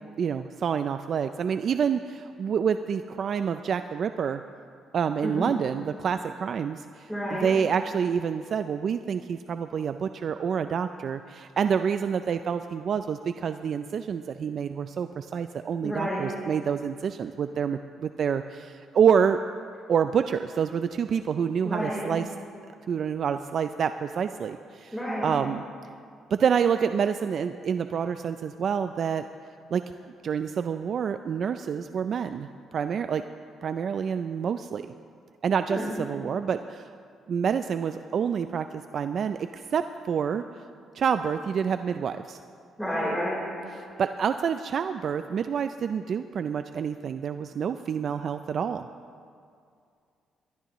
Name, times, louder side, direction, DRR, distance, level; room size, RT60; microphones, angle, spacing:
voice 1, 0.2-4.4 4.9-19.4 19.9-22.3 22.9-25.6 26.3-29.2 29.7-29.8 30.2-33.2 33.6-34.9 35.4-36.9 37.3-40.4 40.9-42.4 43.7-48.9, right 7 dB, 55° right, 9 dB, 0.4 m, -27 dB
voice 2, 7.1-7.5 15.8-16.2 21.6-22.1 24.9-25.4 35.7-35.9 42.8-43.4, equal, 5° left, -8 dB, 4.0 m, -30 dB
22.0 x 12.5 x 3.1 m, 2.3 s
cardioid pair, 90°, 0 cm